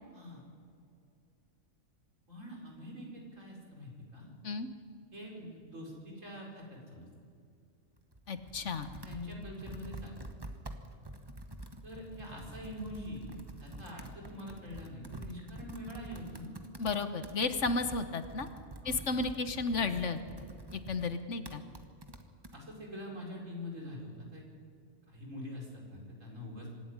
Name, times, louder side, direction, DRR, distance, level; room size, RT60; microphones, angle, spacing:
voice 1, 2.3-4.3 5.1-7.1 9.0-10.2 11.8-16.5 18.8-18.9 22.5-24.4 25.1-26.7, left 1 dB, 70° right, -1 dB, 5.1 m, -44 dB
Computer keyboard, 8.0-22.6, right 1 dB, 20° right, 1.2 m, -47 dB
voice 2, 8.3-8.9 16.8-18.5 18.8-20.2 20.7-21.6, left 3 dB, 60° left, 9 dB, 1.4 m, -33 dB
25.5 x 12.0 x 9.7 m, 2.4 s
omnidirectional pair, 1.4 m